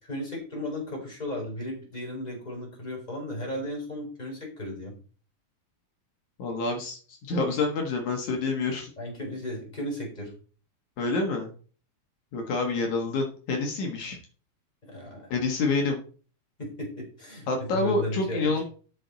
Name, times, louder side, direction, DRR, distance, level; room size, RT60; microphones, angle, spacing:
voice 1, 0.1-4.9 9.0-10.3 14.8-15.3 16.6-18.6, left 1 dB, 10° left, -1 dB, 4.1 m, -35 dB
voice 2, 6.4-8.9 11.0-11.5 12.3-14.2 15.3-16.0 17.5-18.6, left 3 dB, 70° left, 2 dB, 2.9 m, -27 dB
12.5 x 6.1 x 4.0 m, 0.40 s
omnidirectional pair, 3.5 m